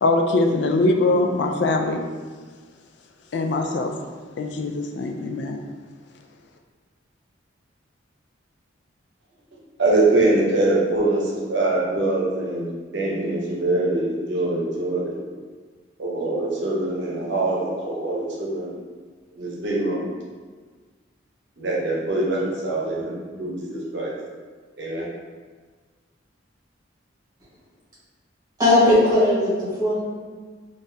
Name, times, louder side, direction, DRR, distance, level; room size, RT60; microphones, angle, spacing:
voice 1, 0.0-2.0 3.3-3.9 4.4-5.6, left 2 dB, 60° left, 3 dB, 0.3 m, -22 dB
voice 2, 9.8-15.2 16.0-18.7 19.3-20.1 21.6-24.1 24.8-25.1, right 2 dB, 65° right, -4 dB, 0.8 m, -23 dB
voice 3, 28.6-30.0, left 1 dB, 15° right, -10 dB, 1.3 m, -18 dB
3.9 x 2.5 x 2.7 m, 1.5 s
head